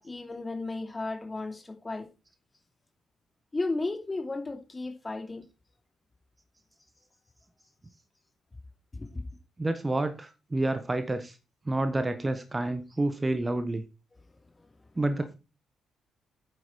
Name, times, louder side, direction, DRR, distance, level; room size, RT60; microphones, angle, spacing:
voice 1, 0.0-2.1 3.5-5.4 8.9-9.1, left 3 dB, 25° left, 2.8 m, -34 dB
voice 2, 9.6-11.4 11.6-13.8 14.9-15.3, right 2 dB, 20° right, 1.2 m, -29 dB
9.3 x 8.1 x 4.6 m
figure-of-eight pair, 40°, 0 cm